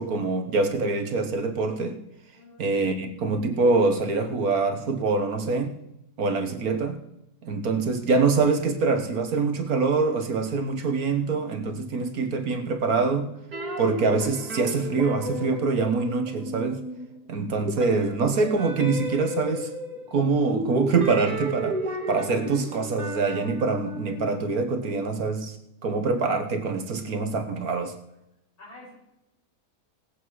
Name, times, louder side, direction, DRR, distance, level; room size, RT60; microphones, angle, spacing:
voice 1, 0.0-2.0 2.6-5.7 6.2-7.0 7.4-13.4 13.8-16.8 17.3-19.7 20.1-21.8 22.1-25.5 25.8-27.9, right 4 dB, 65° right, 7 dB, 1.6 m, -25 dB
voice 2, 2.3-2.6 13.7-14.1 28.6-28.9, left 2 dB, 65° left, -5 dB, 6.8 m, -48 dB
sound 1, 13.5-17.3 17.6-25.4, equal, 85° right, 2.2 m, -34 dB
18.5 x 8.1 x 4.7 m, 0.85 s
omnidirectional pair, 1.7 m